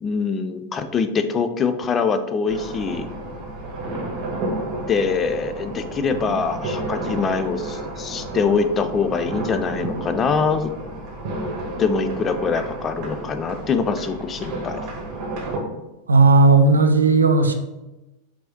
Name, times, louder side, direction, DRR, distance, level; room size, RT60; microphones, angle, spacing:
voice 1, 0.0-3.1 4.9-10.7 11.8-14.8, left 5 dB, 25° left, 9 dB, 0.3 m, -23 dB
sound 1, 2.5-15.6, right 2 dB, 40° right, 1.0 m, -31 dB
voice 2, 16.1-17.5, right 3 dB, 75° right, 7 dB, 0.4 m, -14 dB
4.5 x 2.8 x 2.7 m, 1.0 s
figure-of-eight pair, 90°, 0 cm